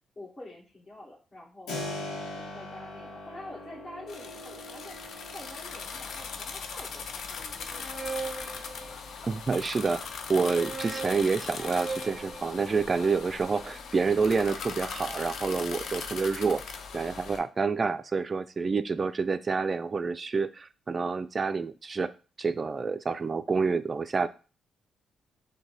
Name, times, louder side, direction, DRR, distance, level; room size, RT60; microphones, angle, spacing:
voice 1, 0.2-5.0 5.3-8.7, left 1 dB, 35° left, -7 dB, 1.8 m, -47 dB
Keyboard (musical), 1.7-12.3, left 2 dB, 85° left, 1.0 m, -44 dB
sound 1, 4.1-17.4, left 5 dB, 70° left, 0.5 m, -40 dB
sound 2, 7.5-9.4 10.2-14.4, right 4 dB, 5° right, 0.7 m, -40 dB
voice 2, 9.2-16.6 16.9-22.1 22.4-24.3, right 4 dB, 40° right, 13 dB, 0.4 m, -28 dB
6.1 x 2.2 x 3.3 m, 0.35 s
cardioid pair, 70°, 0 cm